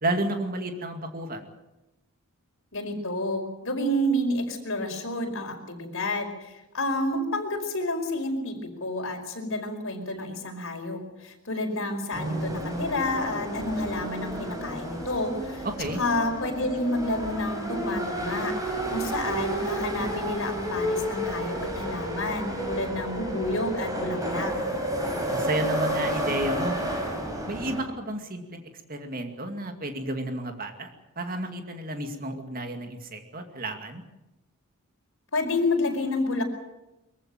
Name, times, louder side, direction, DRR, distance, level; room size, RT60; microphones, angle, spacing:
voice 1, 0.0-1.5 15.6-16.0 25.3-26.8 27.5-28.6 28.9-30.9 31.2-34.0, right 1 dB, 40° right, 5 dB, 2.3 m, -31 dB
voice 2, 2.7-24.6 35.3-36.4, left 1 dB, 65° left, 2 dB, 4.9 m, -29 dB
sound 1, 12.1-27.8, equal, 15° right, 4.9 m, -31 dB
23.5 x 15.0 x 9.1 m, 0.96 s
head